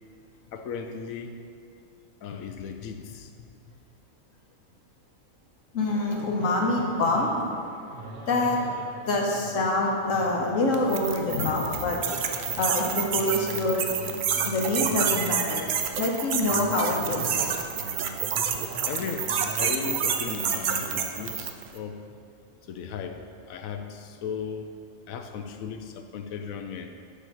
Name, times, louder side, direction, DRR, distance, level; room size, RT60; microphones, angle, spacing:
voice 1, 0.5-1.4 2.2-3.7 11.2-12.0 12.4-12.6 17.6-17.9 18.3-18.4 18.8-22.0 22.6-24.7 25.1-27.1, left 6 dB, 90° left, 6 dB, 1.0 m, -36 dB
voice 2, 5.7-7.5 8.3-8.6 9.1-12.0 12.6-13.9 14.4-15.7 16.0-17.5, left 2 dB, 70° left, 0 dB, 1.4 m, -26 dB
sound 1, 5.8-21.3, right 2 dB, 55° right, 1.0 m, -42 dB
sound 2, 10.7-21.7, right 7 dB, 75° right, 0.4 m, -28 dB
6.9 x 4.7 x 5.6 m, 2.4 s
omnidirectional pair, 1.4 m